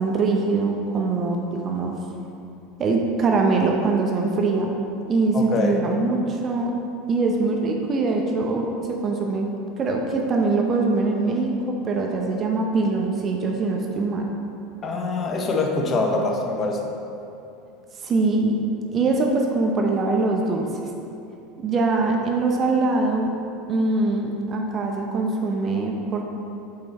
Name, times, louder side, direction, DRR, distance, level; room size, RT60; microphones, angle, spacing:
voice 1, 0.0-1.9 2.8-4.7 5.1-6.7 7.1-9.4 9.8-14.3 18.0-18.6 18.9-20.7 21.6-23.3 23.7-26.2, right 3 dB, 35° right, 1 dB, 0.7 m, -23 dB
voice 2, 5.3-5.8 14.8-16.8, left 3 dB, 35° left, 3 dB, 0.9 m, -24 dB
6.7 x 4.6 x 4.1 m, 2.8 s
supercardioid pair, 100°, 0 cm